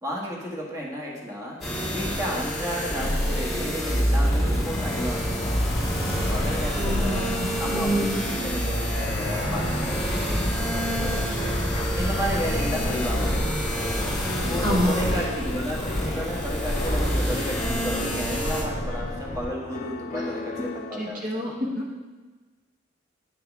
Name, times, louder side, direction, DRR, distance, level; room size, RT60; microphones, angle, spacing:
voice 1, 0.0-1.6 1.9-5.5 6.1-7.3 7.6-11.6 12.0-13.3 14.3-21.5, equal, 20° right, -4 dB, 1.5 m, -33 dB
sound 1, 1.6-18.6, equal, ahead, 2.0 m, -27 dB
Fixed-wing aircraft airplane, 4.3-19.5, left 1 dB, 25° left, 1.4 m, -32 dB
voice 2, 6.8-8.2 14.6-15.1 20.1-20.2 20.6-20.7 21.0-21.9, equal, 45° right, -3 dB, 1.2 m, -27 dB
Piano, 14.2-21.1, left 3 dB, 45° left, 0.5 m, -37 dB
10.5 x 6.2 x 3.5 m, 1.3 s
head